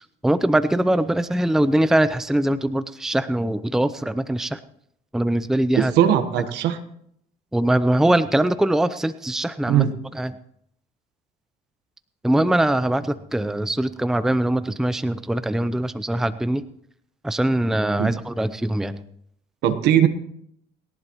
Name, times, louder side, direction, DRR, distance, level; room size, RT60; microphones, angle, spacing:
voice 1, 0.0-4.6 5.1-5.9 7.5-9.8 10.1-10.3 12.2-16.6 17.2-19.0, right 1 dB, 5° right, 12 dB, 0.6 m, -22 dB
voice 2, 5.7-6.8 9.7-10.0 18.0-18.1 19.6-20.1, right 10 dB, 85° right, 8 dB, 1.2 m, -19 dB
29.5 x 11.0 x 3.0 m, 0.72 s
cardioid pair, 110°, 17 cm